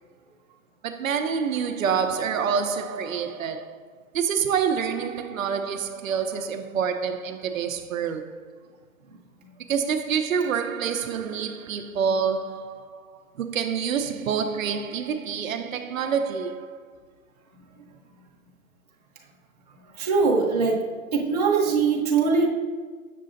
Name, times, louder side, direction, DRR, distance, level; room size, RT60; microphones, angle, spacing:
voice 1, 0.8-3.8 4.1-8.4 9.7-16.8, right 7 dB, 70° right, 0.6 m, -27 dB
voice 2, 20.0-20.8 21.1-22.5, right 4 dB, 30° right, 0.7 m, -21 dB
7.4 x 6.7 x 2.5 m
hypercardioid pair, 170°, 42 cm